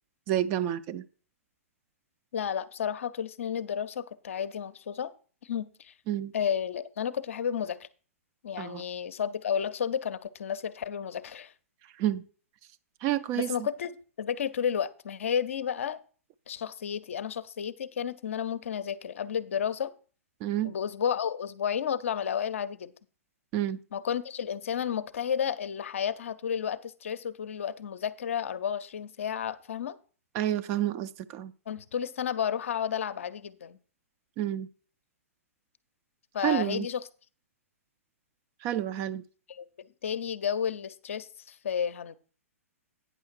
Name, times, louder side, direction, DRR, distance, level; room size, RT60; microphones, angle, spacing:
voice 1, 0.3-1.0 6.1-6.3 8.6-8.8 12.0-12.2 13.0-13.5 20.4-20.7 23.5-23.8 30.3-31.5 34.4-34.7 36.4-36.9 38.6-39.2, right 12 dB, 30° right, 0.4 m, -29 dB
voice 2, 2.3-5.1 5.4-5.9 6.3-7.9 8.4-11.5 13.3-13.9 14.2-16.0 16.5-19.9 20.6-22.9 23.9-30.0 31.7-33.8 36.3-37.0 39.5-39.7 40.0-42.2, left 8 dB, 60° left, 0.6 m, -32 dB
9.1 x 6.3 x 4.5 m
figure-of-eight pair, 110°, 8 cm